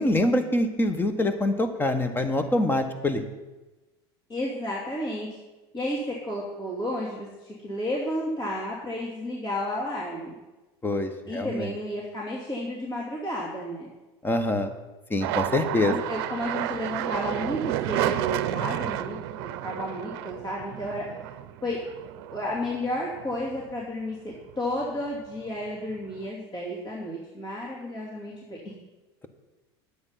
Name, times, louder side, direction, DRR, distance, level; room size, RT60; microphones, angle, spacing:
voice 1, 0.0-3.2 10.8-11.7 14.2-14.7 15.1-15.9, left 1 dB, 15° left, 8 dB, 1.2 m, -25 dB
voice 2, 4.3-5.3 5.7-10.3 11.3-13.9 15.9-21.1 21.6-21.8 22.3-28.7, left 1 dB, 35° left, -5 dB, 2.8 m, -32 dB
sound 1, 15.2-23.9 24.3-25.1 25.4-26.3, right 13 dB, 70° right, 0.6 m, -32 dB
9.6 x 8.1 x 5.7 m, 1.1 s
supercardioid pair, 100°, 13 cm